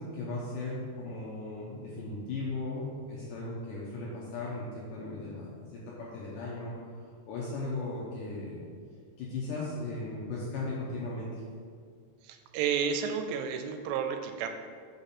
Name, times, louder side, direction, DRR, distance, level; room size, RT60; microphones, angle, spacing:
voice 1, 0.0-6.7 7.3-8.6 9.2-11.4, left 2 dB, 85° left, -5 dB, 1.9 m, -37 dB
voice 2, 12.2-14.5, right 7 dB, 90° right, 7 dB, 2.7 m, -31 dB
5.9 x 5.2 x 4.2 m, 2.1 s
omnidirectional pair, 4.8 m